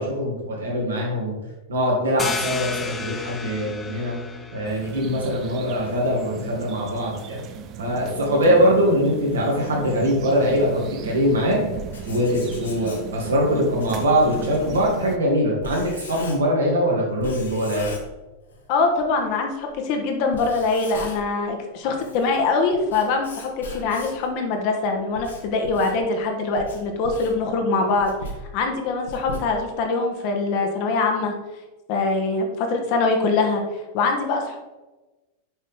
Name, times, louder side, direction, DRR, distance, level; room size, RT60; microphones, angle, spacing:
voice 1, 0.0-1.4 1.7-4.2 4.5-7.4 7.8-11.6 12.1-17.9, equal, 70° right, -2 dB, 2.3 m, -22 dB
sound 1, 2.2-7.6, left 4 dB, 20° left, 0.6 m, -35 dB
sound 2, 4.6-15.2, right 7 dB, 35° right, 0.6 m, -37 dB
Writing, 11.6-16.7 17.2-18.7 19.0-19.1 19.7-19.8 20.2-21.4 21.8-24.3 24.9-29.9, left 1 dB, 65° left, 1.3 m, -39 dB
voice 2, 18.7-28.1 28.5-31.3 31.9-33.6 33.9-34.6, left 3 dB, 45° left, 3 dB, 1.2 m, -23 dB
7.0 x 5.6 x 3.6 m, 1.1 s
figure-of-eight pair, 90°, 0 cm